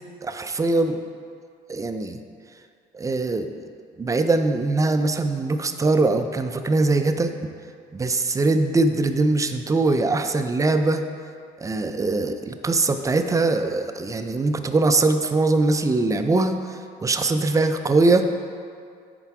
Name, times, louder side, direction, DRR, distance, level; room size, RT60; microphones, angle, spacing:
voice 1, 0.2-1.0 1.7-2.2 2.9-3.5 4.0-7.3 7.9-11.0 11.6-16.6 17.0-18.3, right 3 dB, 20° right, 7 dB, 0.4 m, -21 dB
9.8 x 4.5 x 4.7 m, 2.2 s
cardioid pair, 110°, 17 cm